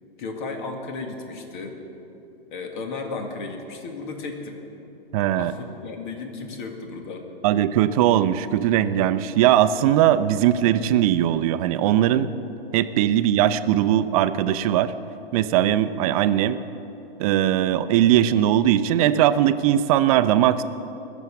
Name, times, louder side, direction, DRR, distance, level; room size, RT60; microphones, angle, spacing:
voice 1, 0.2-1.8 2.5-4.6 5.3-7.3, left 3 dB, 55° left, 4 dB, 2.2 m, -34 dB
voice 2, 5.1-5.5 7.4-12.3 12.7-14.9 15.3-16.6 17.2-20.6, right 11 dB, 40° right, 13 dB, 0.6 m, -20 dB
21.0 x 7.2 x 7.2 m, 3.0 s
hypercardioid pair, 135°, 30 cm